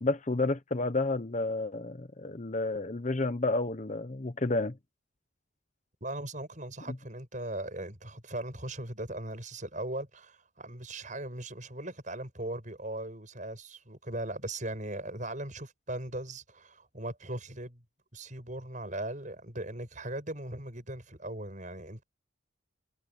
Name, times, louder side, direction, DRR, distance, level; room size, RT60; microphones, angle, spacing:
voice 1, 0.0-4.7, left 2 dB, 35° left, 0.8 m, -30 dB
voice 2, 6.0-17.8 18.1-22.0, right 1 dB, 40° right, 7.5 m, -39 dB
head